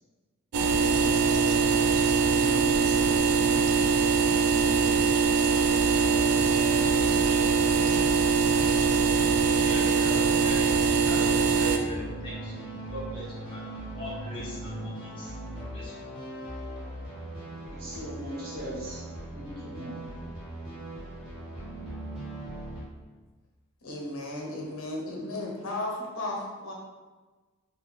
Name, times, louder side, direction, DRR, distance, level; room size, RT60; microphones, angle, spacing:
sound 1, 0.5-11.8, right 5 dB, 80° right, 0.3 m, -23 dB
voice 1, 0.8-2.0 2.3-4.0 4.5-5.2 17.7-19.0 19.3-20.0, equal, 45° right, -8 dB, 1.2 m, -39 dB
sound 2, 5.3-22.8, right 1 dB, 5° right, 1.0 m, -40 dB
voice 2, 9.3-10.8 11.1-15.3 15.6-16.0, equal, 25° left, -10 dB, 1.1 m, -40 dB
voice 3, 23.8-26.7, left 1 dB, 65° left, -2 dB, 0.8 m, -35 dB
3.3 x 2.4 x 3.6 m, 1.3 s
head